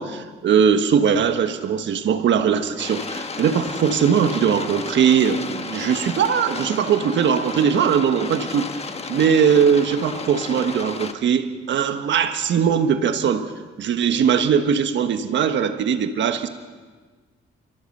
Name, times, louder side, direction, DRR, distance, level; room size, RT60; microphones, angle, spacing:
voice 1, 0.0-8.7 9.1-13.5 13.8-16.5, right 7 dB, 65° right, 8 dB, 1.4 m, -20 dB
sound 1, 2.8-11.1, left 4 dB, 30° left, 1.6 m, -33 dB
29.0 x 14.5 x 6.7 m, 1.4 s
cardioid pair, 90°, 20 cm